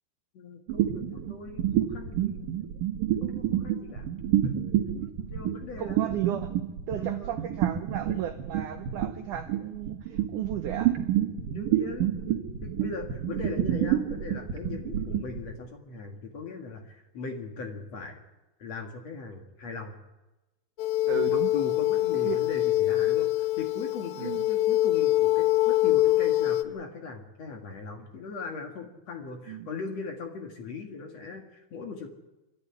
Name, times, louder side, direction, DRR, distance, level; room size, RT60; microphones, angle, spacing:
voice 1, 0.3-2.7 3.2-4.1 4.4-4.7 5.3-6.0 6.9-7.4 11.5-12.2 12.6-18.2 18.6-20.0 21.1-32.1, left 4 dB, 50° left, 3 dB, 2.4 m, -39 dB
sound 1, 0.7-15.5, right 11 dB, 60° right, 3.2 m, -28 dB
voice 2, 5.8-6.5 6.9-11.0 21.1-21.5 22.1-22.4 24.2-24.5 29.5-29.7, right 11 dB, 80° right, 8 dB, 1.8 m, -34 dB
sound 2, 20.8-26.6, left 15 dB, 75° left, 1.8 m, -24 dB
26.5 x 12.5 x 9.8 m, 1.1 s
omnidirectional pair, 4.7 m